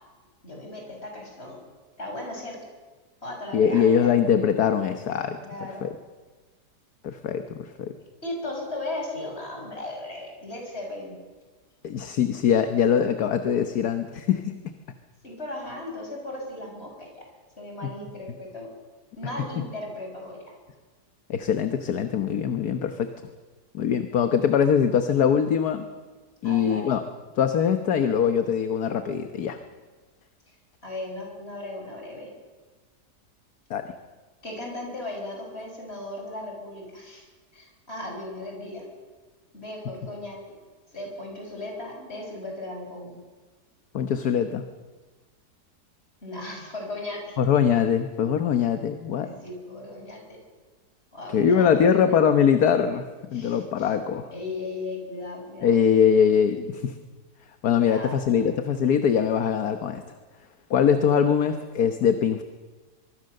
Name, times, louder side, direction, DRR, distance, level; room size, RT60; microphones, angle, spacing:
voice 1, 0.4-1.6 2.0-2.6 3.2-4.1 5.4-5.9 8.0-11.2 15.2-17.2 17.6-18.7 19.1-20.5 26.4-26.9 30.8-32.3 34.4-37.3 37.5-38.9 39.5-40.4 40.9-43.2 46.2-47.4 49.2-50.4 51.1-52.3 53.3-53.9 54.3-55.7 57.8-58.4, left 2 dB, 40° left, 1 dB, 6.4 m, -37 dB
voice 2, 3.5-5.4 5.8-5.9 7.0-7.9 11.8-14.6 17.8-17.9 19.6-19.7 21.3-23.1 23.7-25.8 26.4-27.0 27.4-29.6 33.7-33.9 43.9-44.6 47.4-49.3 51.3-53.0 53.3-54.3 55.6-57.0 57.6-60.0 60.7-62.4, left 7 dB, 70° left, 8 dB, 1.6 m, -22 dB
24.0 x 23.5 x 6.7 m, 1.3 s
omnidirectional pair, 1.7 m